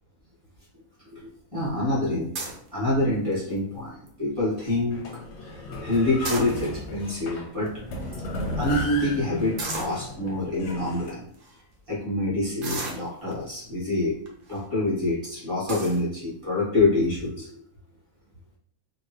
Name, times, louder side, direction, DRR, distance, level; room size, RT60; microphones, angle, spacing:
voice 1, 1.1-2.3 2.7-5.1 5.4-7.7 8.6-11.3 11.9-14.1 14.5-17.6, left 2 dB, 25° right, -9 dB, 1.5 m, -26 dB
sound 1, 2.3-2.7 3.3-3.6 4.1-4.2 4.4-4.7 6.0-6.9 7.7-7.8 8.0-8.1 9.6-10.0 10.7-10.8 11.3-11.5 12.6-13.5 14.3-14.6 15.0-15.1 15.7-16.0, right 3 dB, 65° right, 1.0 m, -34 dB
sound 2, 4.9-11.1, left 2 dB, 60° left, 0.8 m, -35 dB
3.8 x 2.1 x 2.6 m, 0.64 s
omnidirectional pair, 1.5 m